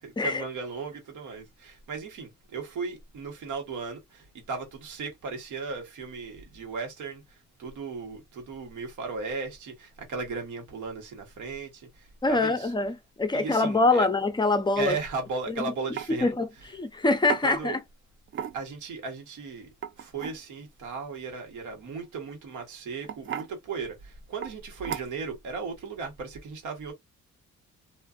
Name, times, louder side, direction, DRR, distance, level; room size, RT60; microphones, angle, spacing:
voice 1, 0.0-12.7 13.3-14.1 14.8-16.3 17.4-17.7 18.5-19.7 20.0-26.9, right 4 dB, 75° right, 1.3 m, -36 dB
voice 2, 12.2-15.0 15.6-15.7 16.2-16.5 16.7-17.8, left 3 dB, 15° left, 0.5 m, -24 dB
sound 1, 15.3-15.4 16.0-16.1 17.3-17.5 18.3-18.8 19.7-20.4 22.0-22.3 23.0-23.5 24.4-24.6 24.8-25.3, right 8 dB, 45° right, 0.4 m, -35 dB
2.5 x 2.4 x 2.3 m
cardioid pair, 90°, 30 cm